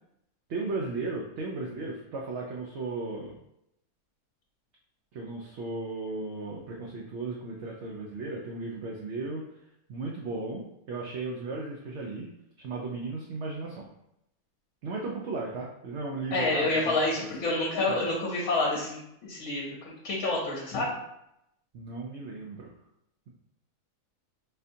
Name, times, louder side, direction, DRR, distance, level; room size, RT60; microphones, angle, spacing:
voice 1, 0.5-3.3 5.1-9.4 9.9-12.3 12.6-13.9 14.8-17.2 17.9-18.0 21.7-22.7, right 3 dB, 65° right, -1 dB, 0.7 m, -35 dB
voice 2, 16.3-20.9, left 2 dB, 75° left, -3 dB, 1.1 m, -28 dB
4.2 x 2.6 x 2.6 m, 0.81 s
omnidirectional pair, 1.5 m